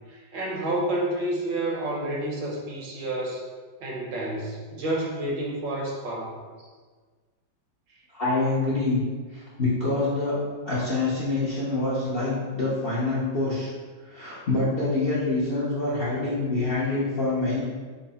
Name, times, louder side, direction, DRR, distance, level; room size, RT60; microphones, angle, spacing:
voice 1, 0.1-3.4 3.8-6.4, right 1 dB, 70° right, -2 dB, 1.5 m, -29 dB
voice 2, 8.1-9.0 9.3-10.4 10.6-13.7 14.1-17.6, left 2 dB, 50° left, -8 dB, 0.6 m, -26 dB
5.7 x 2.1 x 4.1 m, 1.4 s
omnidirectional pair, 2.1 m